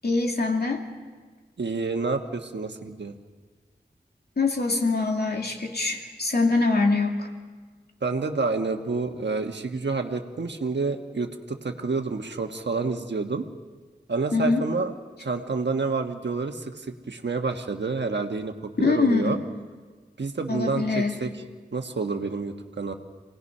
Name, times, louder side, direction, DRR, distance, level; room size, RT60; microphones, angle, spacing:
voice 1, 0.0-0.8 4.4-7.3 14.3-14.7 18.8-19.4 20.5-21.2, left 3 dB, 65° left, 1 dB, 2.4 m, -24 dB
voice 2, 1.6-3.1 8.0-13.5 14.1-14.9 15.2-19.4 20.2-21.3 21.7-22.9, right 4 dB, 80° right, 5 dB, 1.4 m, -29 dB
28.5 x 18.5 x 5.6 m, 1.4 s
wide cardioid pair, 70°, 18 cm